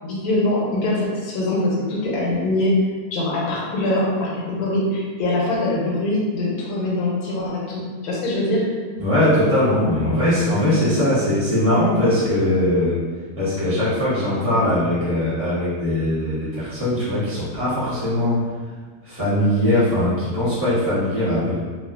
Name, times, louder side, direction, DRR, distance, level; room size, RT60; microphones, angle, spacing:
voice 1, 0.0-2.7 3.1-8.7, left 1 dB, 85° left, -4 dB, 1.2 m, -23 dB
voice 2, 9.0-13.0 13.4-18.4 19.0-21.6, left 1 dB, 10° right, -12 dB, 0.9 m, -20 dB
3.0 x 2.1 x 2.3 m, 1.6 s
omnidirectional pair, 1.6 m